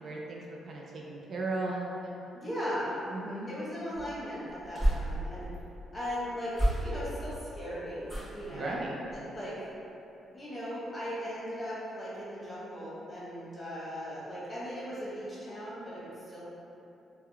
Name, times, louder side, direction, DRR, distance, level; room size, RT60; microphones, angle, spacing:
voice 1, 0.0-2.1 3.1-3.5 8.5-8.9, right 2 dB, 50° right, -2 dB, 0.3 m, -36 dB
voice 2, 2.3-2.9 3.5-5.5 5.9-8.8 9.3-9.7 10.3-16.4, equal, 20° left, -9 dB, 1.0 m, -38 dB
sound 1, 3.9-5.6 6.5-7.3 8.0-8.6 9.0-9.4 9.7-9.8, right 1 dB, 15° right, 1.4 m, -32 dB
3.5 x 2.1 x 2.3 m, 2.9 s
cardioid pair, 90°, 0 cm